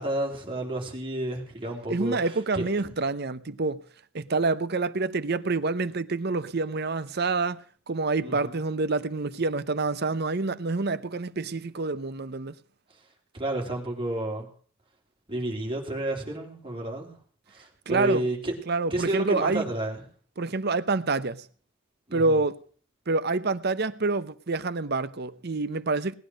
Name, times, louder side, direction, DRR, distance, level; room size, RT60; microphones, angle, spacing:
voice 1, 0.0-2.7 8.2-8.6 13.3-14.5 15.3-17.1 17.5-18.5 18.9-20.0 22.1-22.4, right 1 dB, 25° right, 3.8 m, -30 dB
voice 2, 1.9-3.8 4.1-12.5 17.9-18.3 18.7-19.6 20.4-21.5 22.1-22.6 23.1-26.1, right 3 dB, 55° right, 0.8 m, -27 dB
19.0 x 9.9 x 6.4 m
head